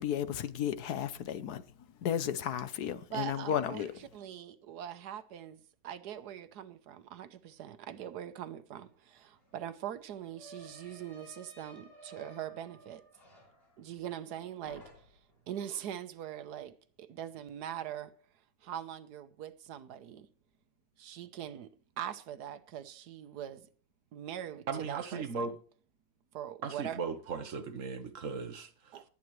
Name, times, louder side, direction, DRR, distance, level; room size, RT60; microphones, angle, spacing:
voice 1, 0.0-1.6 2.0-3.9, left 9 dB, 75° left, 1.3 m, -33 dB
voice 2, 3.1-13.0 13.8-15.2 15.5-18.1 18.6-20.3 21.0-21.7 22.0-23.7 24.1-25.5 26.3-27.0 28.9-29.0, right 10 dB, 80° right, 1.4 m, -42 dB
sound 1, 8.8-8.9 9.1-14.3 14.6-15.4, right 1 dB, 60° left, 6.3 m, -56 dB
voice 3, 24.7-25.5 26.6-29.0, right 5 dB, 55° right, 1.4 m, -37 dB
18.5 x 8.6 x 3.1 m
omnidirectional pair, 1.7 m